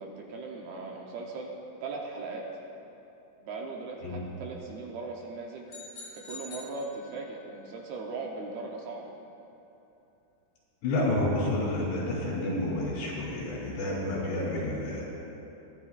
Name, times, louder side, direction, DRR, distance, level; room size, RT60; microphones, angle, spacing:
voice 1, 0.0-1.5 1.8-2.5 3.4-5.7 6.1-9.1, right 3 dB, 75° right, -1 dB, 2.6 m, -38 dB
sound 1, 5.7-7.5, left 3 dB, 40° left, 3.2 m, -46 dB
voice 2, 10.8-15.1, left 1 dB, 70° left, -5 dB, 5.4 m, -30 dB
22.0 x 11.5 x 2.5 m, 2.9 s
omnidirectional pair, 5.1 m